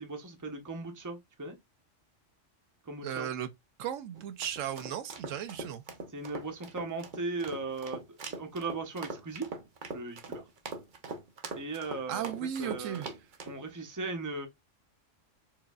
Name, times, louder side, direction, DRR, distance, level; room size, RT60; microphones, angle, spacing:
voice 1, 0.0-1.6 2.9-3.3 6.1-9.5 9.9-10.4 11.5-12.3 12.6-13.1 13.5-14.5, right 3 dB, 15° right, 0.7 m, -38 dB
voice 2, 3.0-3.5 3.8-5.8 12.1-13.1, right 9 dB, 80° right, 0.9 m, -36 dB
sound 1, 4.1-13.6, right 3 dB, 45° right, 0.8 m, -42 dB
4.5 x 2.8 x 2.3 m
omnidirectional pair, 1.3 m